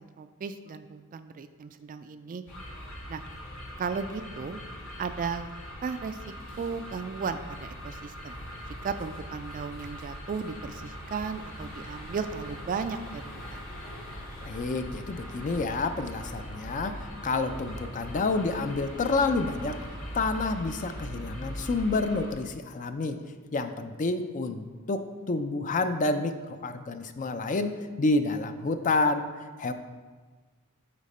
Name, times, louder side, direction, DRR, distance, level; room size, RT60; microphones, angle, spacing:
voice 1, 0.0-2.4 3.1-3.2 3.8-4.6 5.0-5.5 5.8-6.2 6.6-8.4 8.8-13.2 13.5-13.6, right 5 dB, 40° right, 10 dB, 0.3 m, -35 dB
sound 1, 2.5-22.3, equal, 80° left, 2.0 m, -41 dB
voice 2, 14.4-19.8 20.1-23.2 23.5-29.3 29.6-29.7, left 3 dB, 35° left, 9 dB, 0.4 m, -29 dB
8.5 x 4.1 x 4.2 m, 1.4 s
head